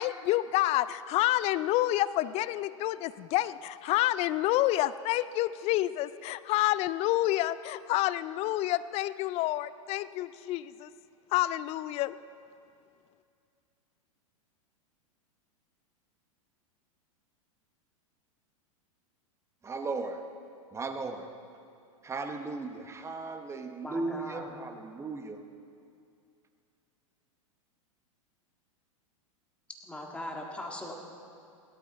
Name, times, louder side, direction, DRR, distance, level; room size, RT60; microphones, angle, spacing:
voice 1, 0.0-10.9 11.3-12.2, left 15 dB, 35° left, 16 dB, 0.4 m, -28 dB
voice 2, 19.6-20.2 20.7-21.3 22.0-25.5, right 3 dB, 15° right, 6 dB, 1.0 m, -36 dB
voice 3, 23.8-24.5 29.8-30.9, left 1 dB, 5° left, 0 dB, 1.9 m, -39 dB
17.0 x 13.0 x 4.1 m, 2.4 s
hypercardioid pair, 105°, 18 cm